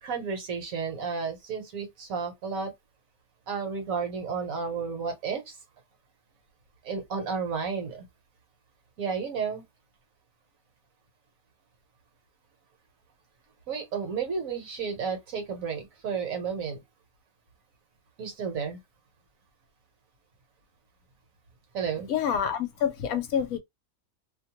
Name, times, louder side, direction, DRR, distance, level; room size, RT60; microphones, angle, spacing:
voice 1, 0.0-2.7 3.5-5.6 6.8-8.0 9.0-9.6 13.7-16.8 18.2-18.8 21.7-22.1, right 5 dB, 65° right, 1.3 m, -32 dB
voice 2, 22.1-23.6, left 8 dB, 70° left, 1.0 m, -27 dB
2.8 x 2.2 x 2.9 m
omnidirectional pair, 1.6 m